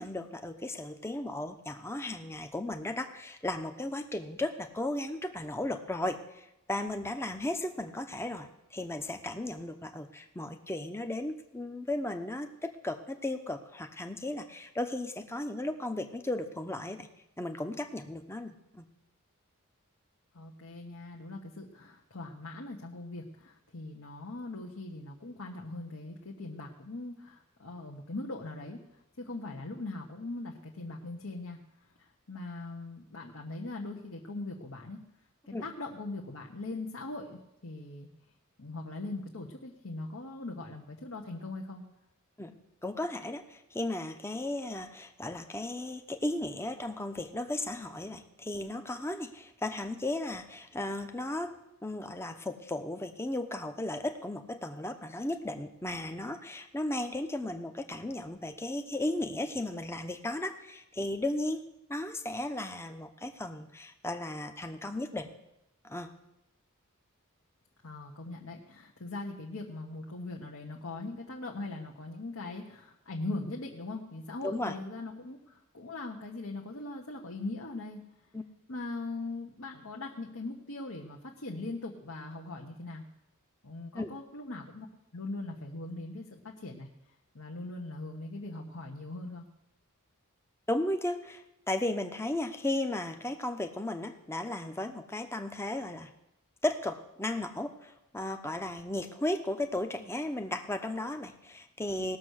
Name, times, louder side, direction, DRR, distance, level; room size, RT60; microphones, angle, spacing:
voice 1, 0.0-17.1 17.4-18.8 35.5-35.6 42.4-42.5 42.8-51.5 51.8-61.6 61.9-65.3 65.8-66.1 74.4-74.7 78.3-78.4 83.9-84.1 90.7-96.1 96.6-102.2, left 1 dB, 10° left, 7 dB, 0.8 m, -35 dB
voice 2, 20.3-28.8 29.2-31.6 32.0-35.0 35.5-38.1 38.6-41.8 67.8-78.0 78.7-83.0 83.6-84.9 85.1-86.9 87.3-89.4, left 2 dB, 65° left, -1 dB, 1.2 m, -40 dB
18.5 x 6.7 x 6.5 m, 0.89 s
head